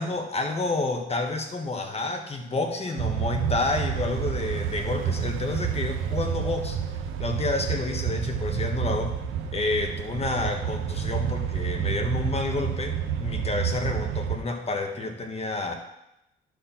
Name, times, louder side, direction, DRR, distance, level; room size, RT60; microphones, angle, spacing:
voice 1, 0.0-6.8 7.2-9.1 9.5-15.7, left 2 dB, 30° left, 4 dB, 1.4 m, -29 dB
sound 1, 3.0-14.4, right 8 dB, 90° right, 1.0 m, -29 dB
11.0 x 4.4 x 5.8 m, 0.87 s
cardioid pair, 90°, 20 cm